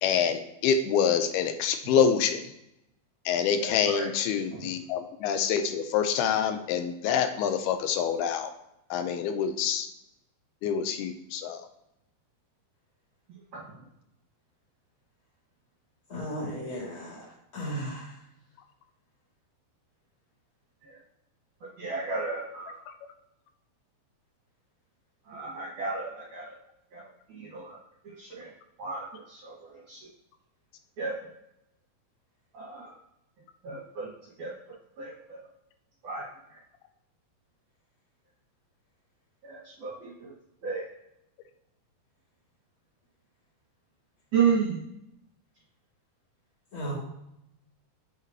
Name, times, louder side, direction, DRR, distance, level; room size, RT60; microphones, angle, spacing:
voice 1, 0.0-2.4 3.3-8.5 8.9-9.9 10.6-11.6, left 7 dB, 85° left, 8 dB, 2.6 m, -26 dB
voice 2, 3.6-4.1 4.5-4.7 13.3-13.9 20.8-21.0 21.6-22.8 25.2-26.6 26.9-27.8 28.0-28.5 28.8-30.1 31.0-31.3 32.5-33.0 33.6-34.5 35.0-35.4 36.0-36.6 39.4-40.3 40.6-40.8 44.3-44.8, right 5 dB, 55° right, -7 dB, 2.8 m, -33 dB
voice 3, 16.1-17.3 17.5-18.1 46.7-47.0, equal, 35° left, -5 dB, 3.5 m, -35 dB
8.2 x 6.7 x 2.9 m, 0.83 s
omnidirectional pair, 4.5 m